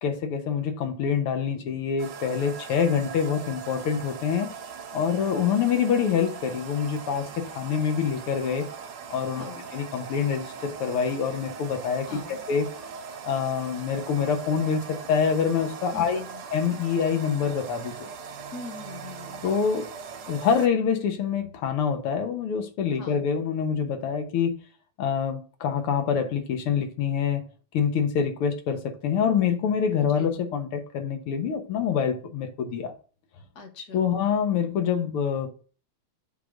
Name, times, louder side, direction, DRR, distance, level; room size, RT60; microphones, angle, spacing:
voice 1, 0.0-4.5 4.9-8.7 9.1-12.7 13.2-16.2 16.5-18.1 19.4-19.9 20.3-24.6 25.0-27.4 27.7-32.9 33.9-35.5, left 7 dB, 90° left, 2.0 m, -26 dB
sound 1, 2.0-20.7, right 6 dB, 80° right, 2.0 m, -40 dB
voice 2, 9.4-9.7 12.1-12.4 15.9-16.4 18.5-19.4 23.0-23.3 30.0-30.3 33.6-34.1, left 4 dB, 50° left, 1.8 m, -42 dB
7.4 x 3.7 x 6.3 m
omnidirectional pair, 2.4 m